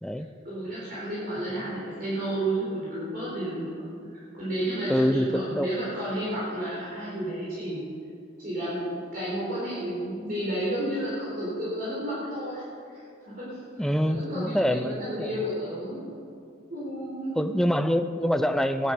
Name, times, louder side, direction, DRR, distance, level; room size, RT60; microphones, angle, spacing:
voice 1, 0.4-3.8 4.1-7.8 8.4-8.9 9.1-12.7 12.9-13.0 13.3-16.0 16.7-17.3, right 1 dB, 45° right, -8 dB, 3.9 m, -32 dB
voice 2, 4.9-5.7 13.8-15.4 17.4-18.9, equal, ahead, 9 dB, 0.5 m, -25 dB
16.5 x 12.0 x 5.2 m, 2.4 s
head